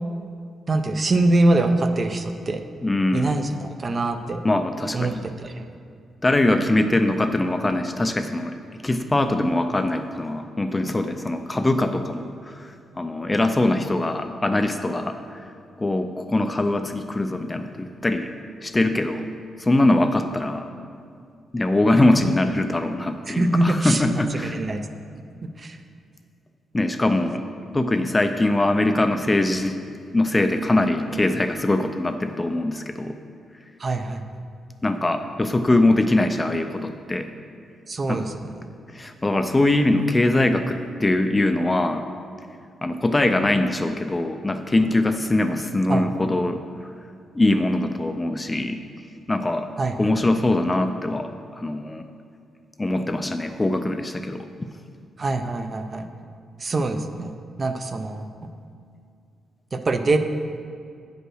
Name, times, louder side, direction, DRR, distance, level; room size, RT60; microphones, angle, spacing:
voice 1, 0.7-2.6 3.1-4.4 4.9-5.7 23.3-24.0 24.3-24.9 25.6-25.8 33.8-34.2 37.9-38.5 45.9-46.1 49.8-50.1 55.2-56.1 56.6-57.3 57.6-58.3 59.7-60.2, right 2 dB, 35° right, 7 dB, 0.5 m, -23 dB
voice 2, 2.8-3.3 4.4-5.2 6.2-8.6 8.8-15.4 15.8-18.3 18.6-19.3 19.6-20.7 21.5-24.6 26.7-27.4 27.7-29.8 30.1-33.2 34.8-37.3 38.1-38.2 38.9-42.0 42.8-46.6 47.3-48.8 49.3-49.7 50.0-52.0 52.8-54.5, left 2 dB, 15° left, 7 dB, 0.4 m, -22 dB
8.8 x 5.3 x 6.3 m, 2.4 s
cardioid pair, 120°, 0 cm